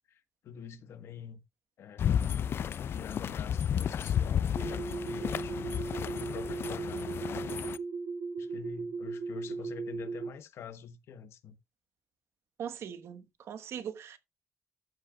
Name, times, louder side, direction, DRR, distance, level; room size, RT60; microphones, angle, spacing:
voice 1, 0.1-1.4 1.8-2.2 2.9-5.7 6.1-7.6 8.4-11.6, left 7 dB, 90° left, 1.2 m, -46 dB
sound 1, 2.0-7.8, left 9 dB, 65° left, 0.5 m, -32 dB
sound 2, 4.5-10.3, right 4 dB, 50° right, 1.7 m, -37 dB
voice 2, 12.6-14.2, right 8 dB, 80° right, 1.2 m, -40 dB
14.0 x 7.9 x 2.3 m
cardioid pair, 120°, 4 cm